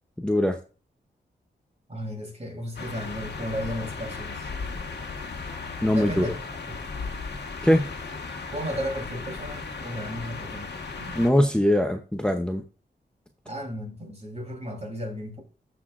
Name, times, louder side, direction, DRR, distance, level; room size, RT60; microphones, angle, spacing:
voice 1, 0.2-0.6 5.8-6.3 7.6-7.9 11.2-12.6, left 1 dB, 5° left, 0.8 m, -21 dB
voice 2, 1.9-4.5 5.9-6.3 6.7-6.8 8.5-11.2 13.5-15.4, equal, 35° right, 3.3 m, -34 dB
sound 1, 2.8-11.3, left 4 dB, 65° left, 1.5 m, -36 dB
13.5 x 6.0 x 2.5 m
cardioid pair, 70°, 19 cm